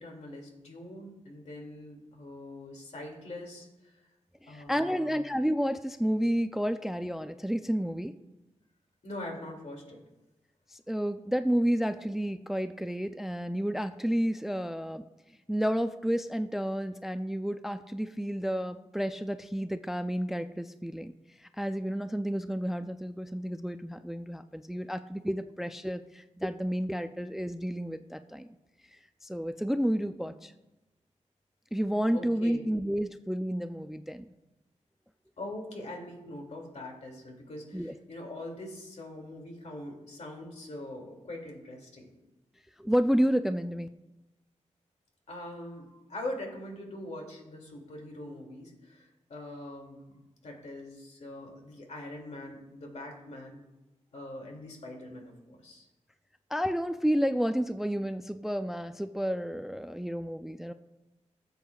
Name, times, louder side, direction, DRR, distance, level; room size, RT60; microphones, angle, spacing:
voice 1, 0.0-4.1 4.5-5.2 9.0-10.0 32.1-32.6 35.4-42.1 45.3-53.6 54.1-55.9, left 1 dB, 65° left, 0 dB, 2.4 m, -43 dB
voice 2, 4.4-8.1 10.7-15.0 15.5-21.1 21.4-28.5 29.2-30.5 31.7-34.2 37.7-37.9 42.8-43.9 56.5-60.7, equal, 5° right, 9 dB, 0.3 m, -30 dB
18.5 x 8.1 x 2.3 m, 1.0 s
wide cardioid pair, 120°, 12 cm